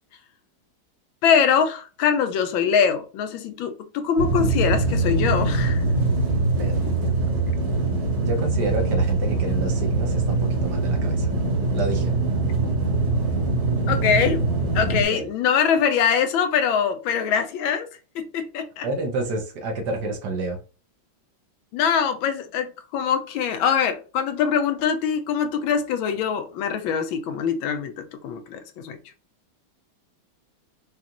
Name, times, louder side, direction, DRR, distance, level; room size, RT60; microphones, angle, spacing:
voice 1, 1.2-5.8 6.8-6.9 13.9-14.4 14.7-17.9 18.1-18.9 21.7-29.0, left 7 dB, 80° left, 1.3 m, -23 dB
sound 1, 4.2-15.0, right 3 dB, 90° right, 2.4 m, -23 dB
voice 2, 8.2-11.3 11.7-12.1 15.1-15.3 18.8-20.6, right 2 dB, 65° right, 1.3 m, -29 dB
5.1 x 2.4 x 2.9 m
omnidirectional pair, 2.2 m